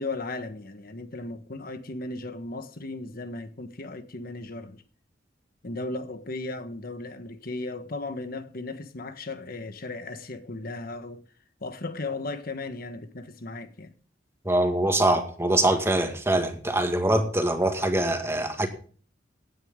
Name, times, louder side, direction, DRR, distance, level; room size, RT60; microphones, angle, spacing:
voice 1, 0.0-4.8 5.6-11.2 11.6-13.9, left 2 dB, 55° left, 1.4 m, -36 dB
voice 2, 14.5-18.7, right 1 dB, 15° right, 2.0 m, -23 dB
17.0 x 9.5 x 3.8 m
head